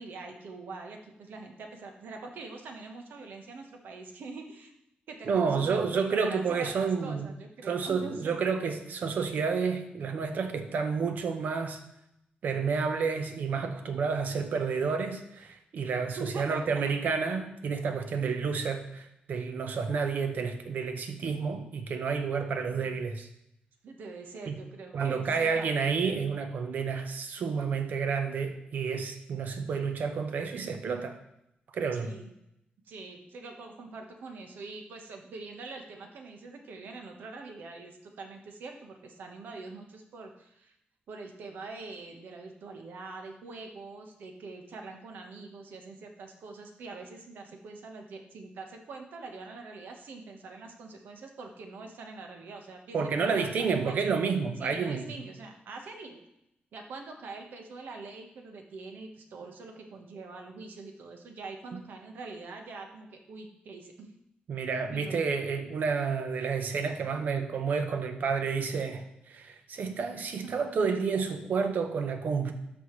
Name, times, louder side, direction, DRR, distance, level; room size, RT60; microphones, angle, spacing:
voice 1, 0.0-4.7 5.1-8.3 16.1-16.8 22.7-22.9 23.8-26.0 31.9-32.3 32.8-40.7 41.1-54.1 54.6-56.2 56.7-64.1 64.9-65.1 70.4-70.5, right 3 dB, 80° right, 3 dB, 1.3 m, -44 dB
voice 2, 5.3-7.3 7.6-11.8 12.4-23.3 24.5-24.6 24.9-31.2 31.7-32.1 52.9-55.1 61.7-61.8 64.5-72.5, right 5 dB, 60° right, 6 dB, 1.0 m, -30 dB
12.5 x 5.6 x 3.2 m, 0.80 s
wide cardioid pair, 160°, 3 cm